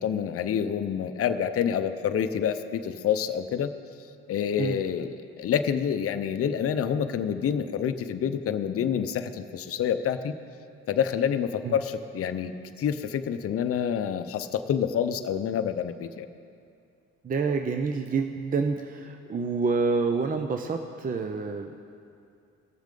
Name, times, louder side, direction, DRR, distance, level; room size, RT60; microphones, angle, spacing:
voice 1, 0.0-3.7 4.3-5.1 5.4-10.3 10.9-12.5 12.8-16.3, left 8 dB, 50° left, 8 dB, 0.6 m, -27 dB
voice 2, 17.2-21.7, right 4 dB, 30° right, 5 dB, 0.5 m, -28 dB
18.0 x 7.2 x 3.8 m, 2.4 s
cardioid pair, 90°, 30 cm